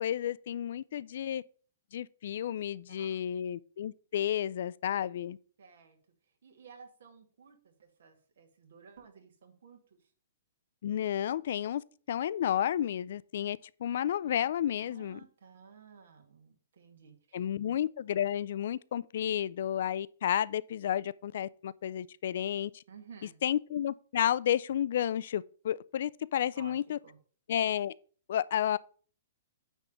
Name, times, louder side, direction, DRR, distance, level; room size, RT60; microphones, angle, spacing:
voice 1, 0.0-1.4 1.9-5.4 10.8-11.8 12.1-15.2 17.3-22.8 23.4-27.0 27.5-27.9 28.3-28.8, left 10 dB, 55° left, 0.3 m, -31 dB
voice 2, 2.9-3.3 5.6-6.0 6.4-10.1 14.8-17.5 22.9-23.4 26.6-27.2, right 6 dB, 70° right, 2.2 m, -55 dB
9.9 x 3.6 x 6.7 m
hypercardioid pair, 170°, 0 cm